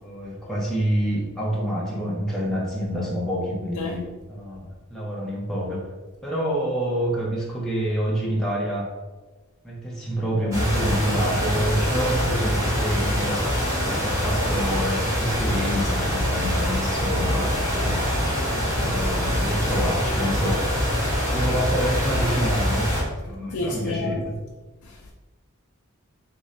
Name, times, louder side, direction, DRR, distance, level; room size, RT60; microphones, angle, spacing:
voice 1, 0.0-5.9 6.2-8.9 9.6-13.4 13.7-18.1 18.5-20.6 21.3-23.0 23.2-24.3, equal, ahead, -6 dB, 0.6 m, -27 dB
sound 1, 10.5-23.0, equal, 15° right, 1.3 m, -24 dB
voice 2, 23.5-24.2 24.8-25.1, left 3 dB, 90° left, 0 dB, 0.4 m, -30 dB
3.6 x 2.6 x 3.2 m, 1.2 s
head